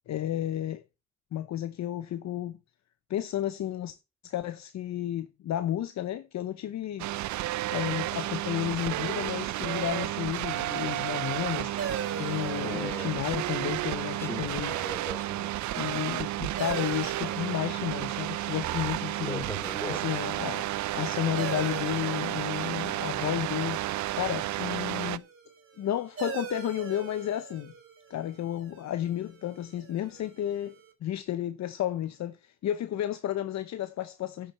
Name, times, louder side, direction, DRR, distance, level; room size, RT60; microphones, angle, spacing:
voice 1, 0.1-0.8 1.3-2.6 3.1-4.0 4.2-7.0 7.7-11.7 12.2-14.7 15.8-19.5 19.9-23.8 24.1-25.2 25.8-27.7 28.1-30.7 31.0-34.5, left 11 dB, 65° left, 0.9 m, -32 dB
sound 1, 7.0-25.2, right 15 dB, 70° right, 0.6 m, -32 dB
sound 2, 11.8-30.9, right 6 dB, 45° right, 3.8 m, -43 dB
voice 2, 12.6-13.2 14.2-15.7 19.2-20.2, left 1 dB, 10° left, 2.2 m, -39 dB
10.0 x 6.9 x 5.9 m
cardioid pair, 90°, 30 cm